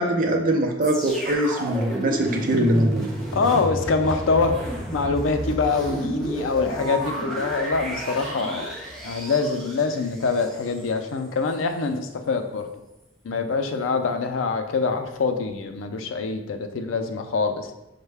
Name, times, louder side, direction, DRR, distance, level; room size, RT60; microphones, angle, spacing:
voice 1, 0.0-3.1, right 1 dB, 45° right, 1 dB, 0.6 m, -22 dB
sound 1, 0.8-10.9 11.5-11.6, right 1 dB, ahead, 0.7 m, -32 dB
voice 2, 3.3-4.5 4.9-8.7 9.0-12.7 13.2-17.7, left 4 dB, 90° left, 7 dB, 0.4 m, -24 dB
5.4 x 2.1 x 3.3 m, 0.95 s
head